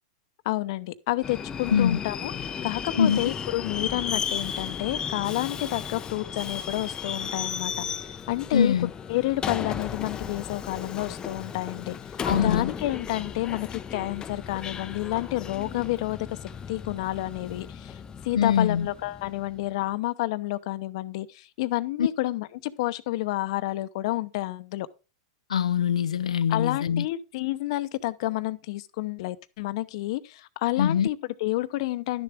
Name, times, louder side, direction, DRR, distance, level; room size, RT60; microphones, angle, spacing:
voice 1, 0.4-8.7 9.1-16.3 16.7-24.9 26.5-32.2, left 17 dB, 60° left, 0.8 m, -30 dB
Subway metro underground, 1.2-19.7, left 7 dB, 20° left, 0.6 m, -35 dB
voice 2, 1.7-2.0 3.0-3.3 8.5-8.9 12.2-12.7 18.3-18.9 22.0-22.1 25.5-27.1 30.8-31.1, left 8 dB, 90° left, 0.5 m, -23 dB
11.5 x 7.0 x 3.5 m
hypercardioid pair, 115°, 3 cm